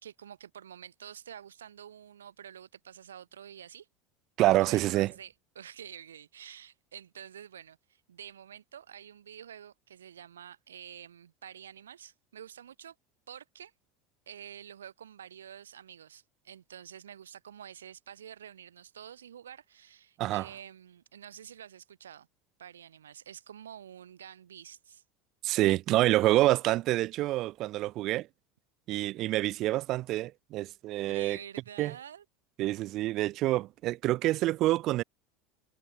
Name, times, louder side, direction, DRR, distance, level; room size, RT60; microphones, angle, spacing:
voice 1, 0.0-3.9 4.6-12.9 13.3-13.7 14.3-22.3 22.6-25.0 26.4-26.5 31.1-32.2, right 9 dB, 80° right, 3.2 m, -48 dB
voice 2, 4.4-5.1 20.2-20.5 25.4-28.3 28.9-31.4 31.8-31.9 32.6-35.0, right 16 dB, 50° right, 0.6 m, -27 dB
figure-of-eight pair, 75°, 0 cm